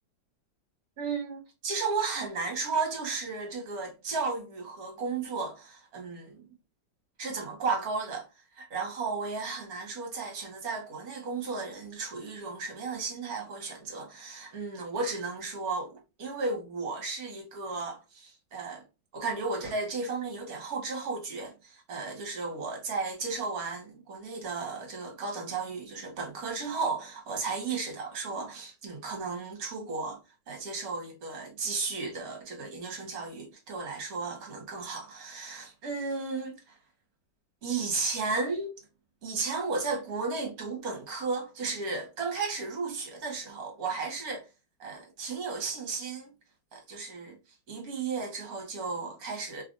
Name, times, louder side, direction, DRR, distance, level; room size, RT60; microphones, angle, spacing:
voice 1, 1.0-6.4 7.2-8.3 8.6-18.8 19.1-30.2 30.5-36.8 37.6-38.8 39.2-44.5 44.8-46.3 46.7-47.4 47.7-49.6, right 4 dB, 55° right, 1.5 m, -34 dB
3.2 x 2.4 x 2.5 m
omnidirectional pair, 2.0 m